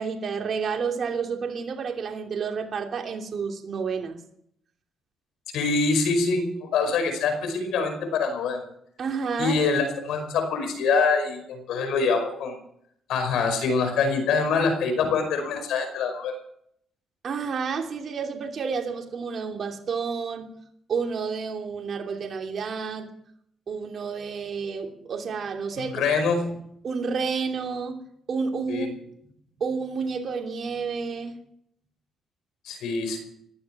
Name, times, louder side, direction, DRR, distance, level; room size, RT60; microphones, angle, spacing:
voice 1, 0.0-4.2 9.0-9.6 17.2-20.5 20.9-23.1 23.7-25.9 26.8-28.9 29.6-31.4, right 5 dB, 55° right, 2 dB, 2.9 m, -30 dB
voice 2, 5.5-8.6 9.4-12.6 13.1-16.3 25.8-26.6 28.7-28.9 32.7-33.2, left 4 dB, 80° left, 7 dB, 5.3 m, -25 dB
18.5 x 12.5 x 6.1 m, 0.70 s
cardioid pair, 90°, 0 cm